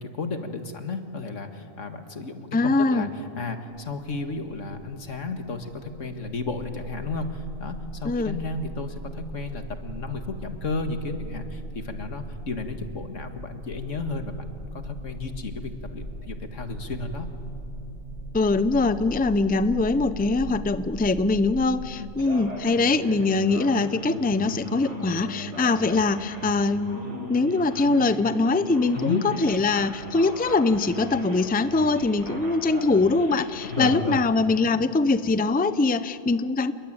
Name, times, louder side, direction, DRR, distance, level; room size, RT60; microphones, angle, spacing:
voice 1, 0.0-17.3 22.0-22.1 28.9-29.2 33.6-34.2, left 3 dB, 90° left, 7 dB, 2.2 m, -33 dB
voice 2, 2.5-3.1 8.0-8.3 18.3-27.0 27.3-36.7, left 3 dB, 10° left, 13 dB, 0.5 m, -23 dB
sound 1, 4.8-21.9, right 1 dB, 35° left, 5.2 m, -39 dB
Male speech man speaking, 22.2-34.2, equal, 70° right, 5.0 m, -38 dB
28.5 x 21.5 x 8.9 m, 2.5 s
omnidirectional pair, 1.3 m